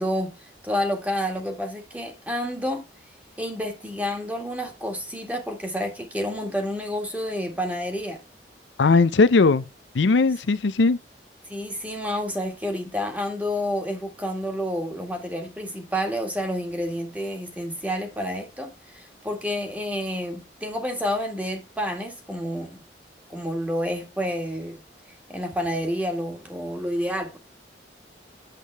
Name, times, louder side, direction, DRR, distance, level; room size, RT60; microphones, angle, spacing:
voice 1, 0.0-2.9 3.4-8.2 11.5-22.8 23.3-24.8 25.3-27.4, equal, 10° right, 1.8 m, -29 dB
voice 2, 8.8-9.7 9.9-11.0, left 3 dB, 90° left, 0.5 m, -18 dB
8.3 x 7.3 x 3.4 m
head